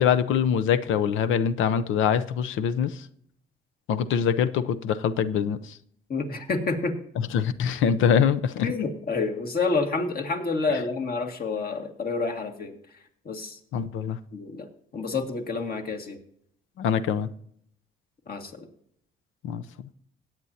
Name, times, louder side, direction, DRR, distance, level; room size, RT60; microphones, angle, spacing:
voice 1, 0.0-3.0 3.9-5.8 7.3-8.7 13.7-14.2 16.8-17.3 19.4-19.6, left 8 dB, 85° left, 13 dB, 0.7 m, -24 dB
voice 2, 6.1-6.9 8.6-12.7 13.3-13.6 14.3-16.2 18.3-18.7, left 4 dB, 50° left, 3 dB, 2.1 m, -29 dB
17.5 x 8.9 x 2.8 m, 0.67 s
cardioid pair, 90°, 20 cm